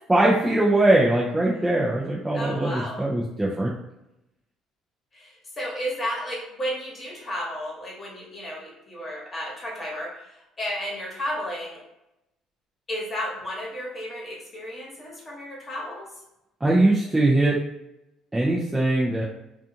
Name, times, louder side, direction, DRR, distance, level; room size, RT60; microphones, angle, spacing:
voice 1, 0.1-3.7 16.6-17.6 18.3-19.2, right 1 dB, 15° right, -5 dB, 0.5 m, -21 dB
voice 2, 2.3-3.1 5.1-11.8 12.9-16.1, equal, 30° left, -3 dB, 1.2 m, -33 dB
2.4 x 2.4 x 2.7 m, 0.87 s
supercardioid pair, 80°, 0 cm